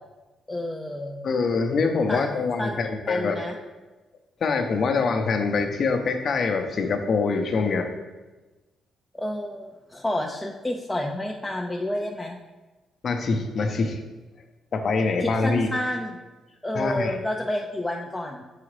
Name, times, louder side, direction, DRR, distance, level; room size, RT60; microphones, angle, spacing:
voice 1, 0.5-1.2 2.1-2.2 2.6-3.5 9.1-12.4 15.2-16.2 16.6-18.4, left 1 dB, 10° left, 0 dB, 0.5 m, -30 dB
voice 2, 1.2-3.4 4.4-7.9 13.0-14.0 14.7-15.7 16.7-17.2, left 4 dB, 50° left, 6 dB, 0.7 m, -24 dB
6.9 x 4.8 x 3.2 m, 1.2 s
cardioid pair, 100°, 0 cm